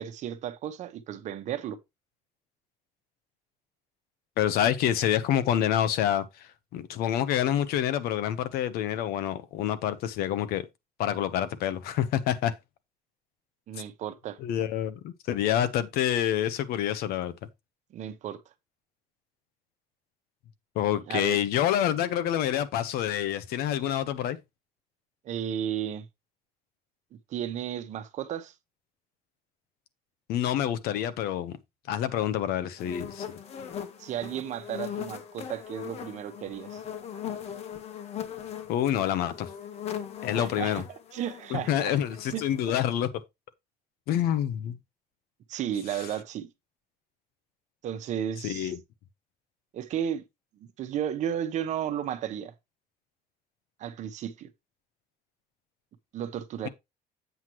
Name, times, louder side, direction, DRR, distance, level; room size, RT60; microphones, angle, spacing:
voice 1, 0.0-1.8 13.7-14.4 17.9-18.4 21.1-21.4 25.2-26.1 27.3-28.5 34.0-36.8 40.3-40.8 41.1-42.0 42.3-42.4 45.5-46.5 47.8-48.7 49.7-50.2 50.6-52.5 53.8-54.5 56.1-56.7, right 10 dB, 50° right, 1.0 m, -33 dB
voice 2, 4.4-10.6 11.0-12.6 14.4-17.3 20.7-24.4 30.3-31.6 31.9-33.3 38.7-39.5 40.2-40.8 41.5-43.1 44.1-44.8 45.9-46.0 48.4-48.8, left 11 dB, 85° left, 1.0 m, -27 dB
sound 1, 32.8-42.7, left 9 dB, 45° left, 0.9 m, -39 dB
8.1 x 7.5 x 3.1 m
cardioid pair, 175°, 15 cm